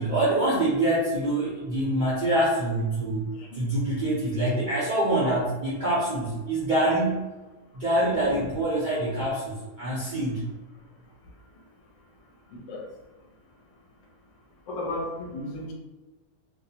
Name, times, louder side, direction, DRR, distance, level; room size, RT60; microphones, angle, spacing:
voice 1, 0.0-3.3 3.5-7.3 7.7-10.4, right 1 dB, 55° right, -9 dB, 0.5 m, -25 dB
voice 2, 12.5-12.9 14.7-15.7, left 1 dB, 65° left, -1 dB, 0.9 m, -34 dB
2.5 x 2.0 x 2.7 m, 1.1 s
omnidirectional pair, 1.6 m